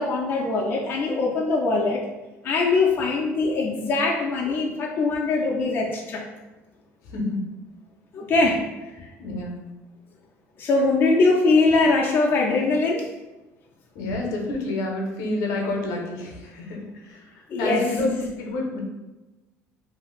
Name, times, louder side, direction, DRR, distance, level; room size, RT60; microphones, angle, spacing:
voice 1, 0.0-2.0 2.4-6.2 8.1-8.6 9.0-9.1 10.6-13.1 17.5-17.9, left 3 dB, 40° left, -2 dB, 0.4 m, -22 dB
voice 2, 7.0-7.4 9.2-9.6 13.9-18.8, left 2 dB, 75° left, 1 dB, 0.7 m, -28 dB
2.7 x 2.4 x 3.0 m, 1.1 s
cardioid pair, 135°, 6 cm